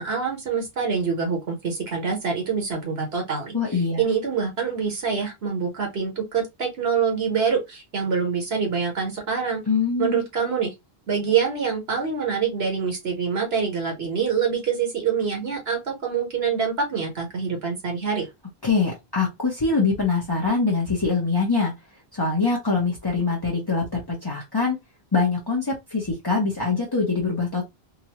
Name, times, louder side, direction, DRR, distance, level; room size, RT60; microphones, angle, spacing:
voice 1, 0.0-9.6 10.0-10.7 11.1-18.2, right 6 dB, 75° right, 1.4 m, -25 dB
voice 2, 3.5-4.0 9.7-10.2 18.6-21.7 22.1-24.8 25.1-27.7, left 4 dB, 25° left, 0.8 m, -23 dB
3.8 x 2.2 x 2.9 m
omnidirectional pair, 1.0 m